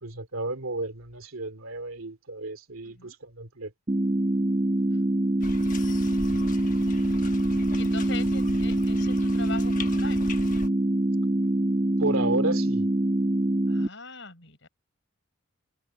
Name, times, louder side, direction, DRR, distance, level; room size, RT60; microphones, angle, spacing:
voice 1, 0.0-3.7 12.0-12.9, right 2 dB, 80° right, 2.5 m, -32 dB
voice 2, 2.8-3.2 4.8-5.1 7.7-10.3 13.7-14.7, left 4 dB, 60° left, 6.5 m, -41 dB
sound 1, 3.9-13.9, right 1 dB, 30° right, 1.0 m, -25 dB
sound 2, 5.4-10.7, left 2 dB, 35° left, 1.3 m, -39 dB
head